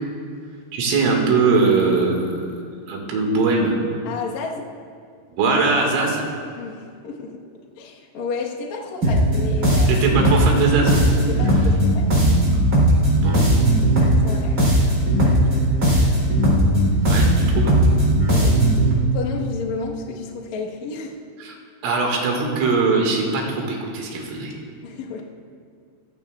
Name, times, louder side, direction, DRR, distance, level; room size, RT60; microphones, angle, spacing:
voice 1, 0.7-2.5 2.9-3.8 5.3-6.3 9.9-11.0 13.2-13.4 17.1-17.7 21.4-21.6 21.8-24.5, right 4 dB, 85° right, 0 dB, 4.6 m, -21 dB
voice 2, 4.0-4.7 6.6-7.3 7.8-10.0 11.3-12.1 13.8-14.6 15.1-15.8 17.0-17.1 18.3-18.5 19.1-21.1 24.8-25.2, left 4 dB, 70° left, -2 dB, 1.7 m, -31 dB
sound 1, 9.0-18.9, right 1 dB, 25° right, 4.1 m, -17 dB
24.5 x 15.5 x 2.5 m, 2.2 s
omnidirectional pair, 5.7 m